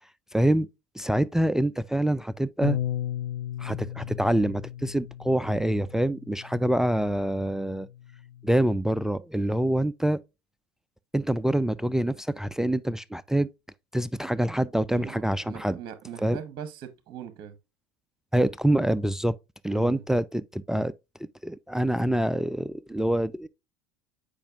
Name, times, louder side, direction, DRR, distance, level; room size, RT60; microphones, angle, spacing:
voice 1, 0.3-0.7 1.0-2.8 3.6-7.9 8.4-10.2 11.1-13.5 13.9-15.8 16.2-16.4 18.3-19.4 19.6-20.9 21.4-23.5, right 1 dB, 5° right, 0.3 m, -25 dB
Bass guitar, 2.6-8.9, left 11 dB, 70° left, 0.6 m, -36 dB
voice 2, 14.9-17.5 19.7-20.0, right 8 dB, 45° right, 1.0 m, -41 dB
8.8 x 5.1 x 2.4 m
hypercardioid pair, 75°, 12 cm